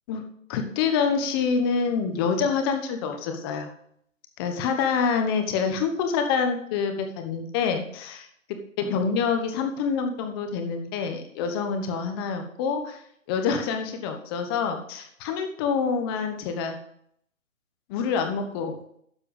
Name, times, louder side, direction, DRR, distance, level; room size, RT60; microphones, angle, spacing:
voice 1, 0.5-3.7 4.4-8.3 8.8-13.0 13.3-16.8 17.9-18.7, left 6 dB, 20° left, 6 dB, 1.0 m, -26 dB
12.5 x 4.5 x 7.1 m, 0.68 s
hypercardioid pair, 150°, 40 cm